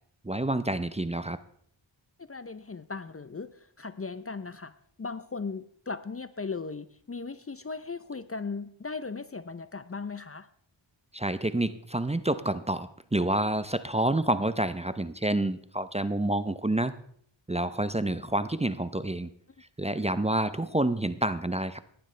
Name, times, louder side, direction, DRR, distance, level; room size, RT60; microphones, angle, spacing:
voice 1, 0.2-1.4 11.1-16.9 17.5-19.3 19.8-21.8, right 1 dB, 15° right, 13 dB, 0.6 m, -28 dB
voice 2, 2.2-10.5, left 4 dB, 30° left, 14 dB, 0.6 m, -38 dB
17.0 x 11.5 x 3.3 m, 0.62 s
cardioid pair, 50°, 48 cm